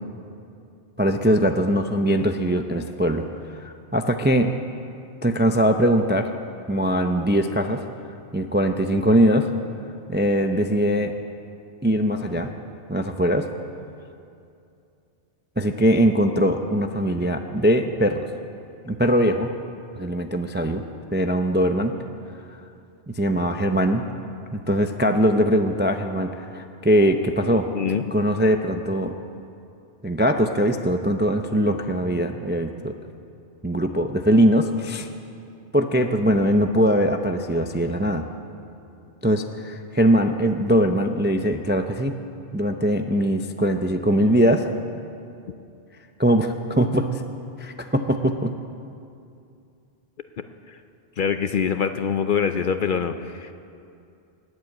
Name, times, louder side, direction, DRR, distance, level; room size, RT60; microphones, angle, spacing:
voice 1, 1.0-3.3 3.5-4.5 5.2-6.3 6.7-7.8 8.3-9.5 10.1-11.1 11.8-12.5 12.9-13.5 15.6-18.3 18.9-19.5 20.0-20.8 21.1-21.9 23.1-24.0 24.5-27.7 28.1-29.1 30.0-32.9 33.6-35.1 35.7-38.3 39.2-42.2 42.5-44.7 46.2-47.1 47.6-48.5, equal, 15° right, 6 dB, 0.3 m, -21 dB
voice 2, 27.7-28.1 50.7-50.8 51.2-53.5, left 7 dB, 55° left, 9 dB, 0.7 m, -24 dB
19.5 x 7.9 x 8.3 m, 2.5 s
omnidirectional pair, 1.2 m